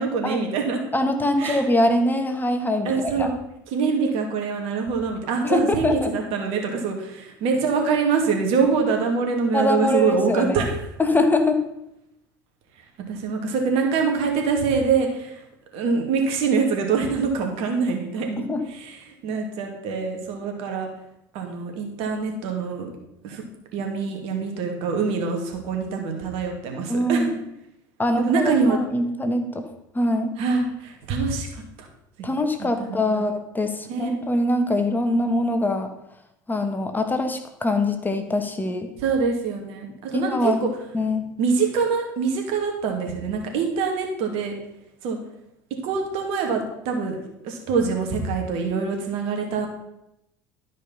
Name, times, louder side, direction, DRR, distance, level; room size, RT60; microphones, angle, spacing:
voice 1, 0.0-0.8 1.4-1.6 2.9-3.3 3.7-10.8 13.1-15.4 15.7-18.4 18.7-20.9 21.3-22.9 23.2-23.4 23.7-27.3 28.2-28.8 30.4-31.9 32.2-32.3 32.6-33.2 33.9-34.1 39.0-40.7 41.4-44.5 45.0-45.2 45.8-47.2 47.4-49.7, right 5 dB, 65° right, 3 dB, 2.3 m, -24 dB
voice 2, 0.9-3.3 5.4-6.1 9.5-10.7 11.0-11.6 18.4-18.6 26.9-27.4 28.0-29.6 29.9-30.3 32.2-35.9 36.5-38.9 40.1-40.6 40.9-41.2, left 1 dB, 15° left, 6 dB, 1.4 m, -23 dB
12.5 x 5.2 x 5.6 m, 0.83 s
hypercardioid pair, 75°, 11 cm